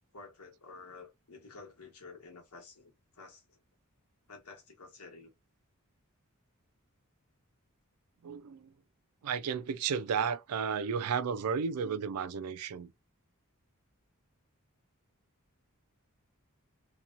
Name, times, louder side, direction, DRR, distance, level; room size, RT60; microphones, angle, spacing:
voice 1, 0.1-3.6 4.3-5.3, left 4 dB, 85° left, 1.2 m, -51 dB
voice 2, 8.2-8.7 9.2-12.9, right 6 dB, 85° right, 0.4 m, -33 dB
2.9 x 2.3 x 2.4 m
head